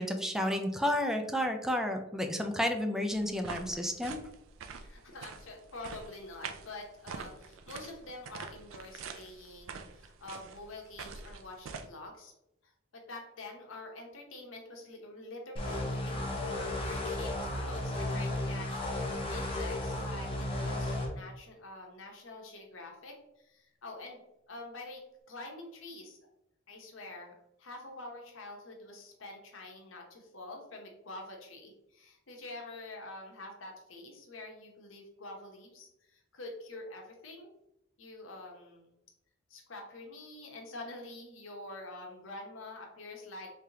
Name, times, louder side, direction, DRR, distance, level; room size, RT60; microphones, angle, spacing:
voice 1, 0.0-4.2, left 1 dB, ahead, 5 dB, 0.4 m, -31 dB
sound 1, 3.1-11.9, right 5 dB, 85° right, 0.4 m, -45 dB
voice 2, 4.8-12.3 12.6-25.0 25.3-26.2 26.7-27.3 27.6-37.5 38.0-38.9 39.5-43.5, left 2 dB, 80° left, 1 dB, 0.9 m, -46 dB
sound 2, 15.6-21.1, left 1 dB, 30° left, 0.7 m, -34 dB
3.5 x 3.3 x 2.8 m, 0.84 s
head